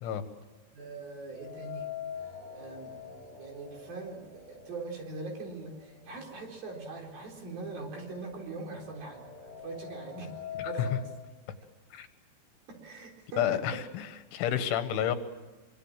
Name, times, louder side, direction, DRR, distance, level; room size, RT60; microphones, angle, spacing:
voice 1, 0.7-1.9 2.5-10.3 10.6-11.1 12.7-13.8, right 3 dB, 50° right, 1 dB, 5.8 m, -42 dB
sound 1, 1.3-5.4 5.7-5.8 6.8-6.9 7.3-11.1, left 8 dB, 25° right, 5.2 m, -43 dB
voice 2, 13.4-13.8 14.3-15.2, left 10 dB, 85° left, 9 dB, 3.9 m, -29 dB
25.0 x 24.5 x 7.5 m, 1.2 s
omnidirectional pair, 5.3 m